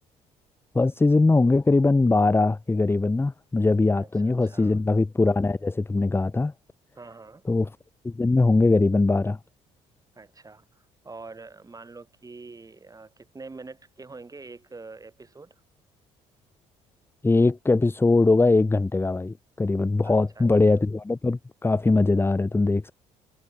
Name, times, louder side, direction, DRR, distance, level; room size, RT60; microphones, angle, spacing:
voice 1, 0.7-6.5 7.5-7.7 8.0-9.4 17.2-22.9, left 3 dB, 15° left, 0.9 m, -21 dB
voice 2, 4.0-4.8 7.0-7.4 10.2-15.6 20.0-20.5, right 3 dB, 25° right, 5.7 m, -45 dB
supercardioid pair, 65°, 15 cm